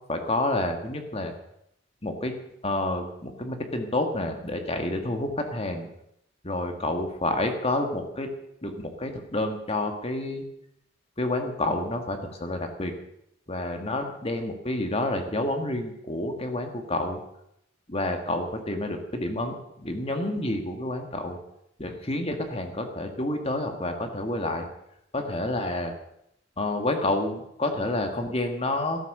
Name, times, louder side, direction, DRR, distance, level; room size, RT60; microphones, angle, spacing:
voice 1, 0.1-1.3 2.0-2.3 2.6-5.9 6.4-8.3 8.6-10.4 11.2-12.9 13.5-17.2 17.9-21.4 21.8-24.7 25.1-25.9 26.6-29.1, left 1 dB, 30° left, 5 dB, 1.8 m, -29 dB
13.0 x 12.5 x 6.7 m, 0.79 s
head